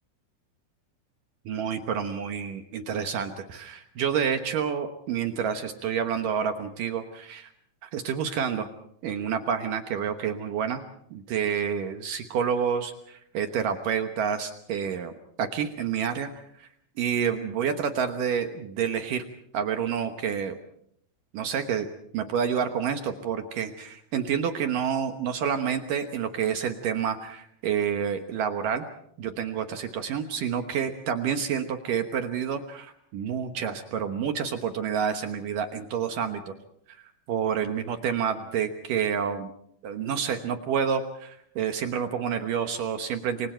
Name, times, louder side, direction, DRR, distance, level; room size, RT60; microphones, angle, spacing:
voice 1, 1.5-7.5 7.8-8.7 9.0-10.8 11.1-15.1 15.4-16.3 16.6-16.7 17.0-19.2 19.5-20.6 21.3-21.9 22.1-28.9 29.2-36.5 36.9-37.0 37.3-39.5 39.8-43.5, right 7 dB, 70° right, 7 dB, 2.1 m, -28 dB
28.0 x 24.0 x 4.5 m, 0.68 s
omnidirectional pair, 5.4 m